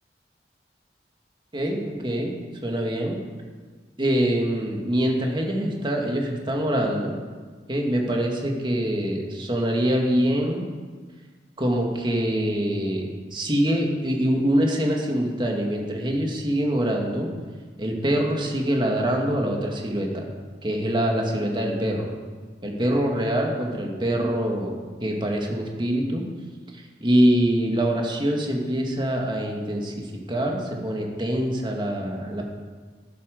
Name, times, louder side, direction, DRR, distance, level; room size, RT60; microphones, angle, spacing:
voice 1, 1.5-2.3 2.6-3.2 4.0-7.1 7.7-10.6 11.6-17.3 17.8-20.3 20.6-22.1 22.6-24.8 25.0-26.3 26.7-29.9 30.3-32.4, equal, 25° right, 0 dB, 1.9 m, -24 dB
11.5 x 10.0 x 6.6 m, 1.5 s
head